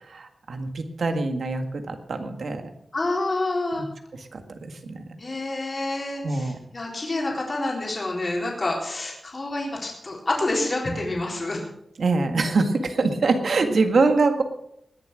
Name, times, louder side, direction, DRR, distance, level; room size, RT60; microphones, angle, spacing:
voice 1, 0.1-2.6 4.1-5.0 6.2-6.6 12.0-14.4, right 3 dB, 75° right, 7 dB, 1.7 m, -24 dB
voice 2, 2.9-3.8 5.2-11.6, left 2 dB, 40° left, -1 dB, 3.8 m, -28 dB
20.0 x 7.3 x 6.3 m, 0.76 s
wide cardioid pair, 135°, 0 cm